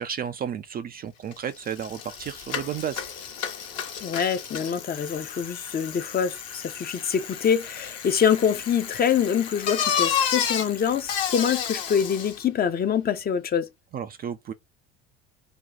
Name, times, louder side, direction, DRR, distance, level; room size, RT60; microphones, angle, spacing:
voice 1, 0.0-3.0 13.9-14.5, right 8 dB, 30° right, 0.4 m, -32 dB
Bicycle, 1.3-1.4 1.7-12.4, left 8 dB, 55° left, 1.0 m, -31 dB
voice 2, 4.0-13.7, left 8 dB, 30° left, 0.6 m, -25 dB
2.8 x 2.2 x 3.8 m
hypercardioid pair, 70°, 31 cm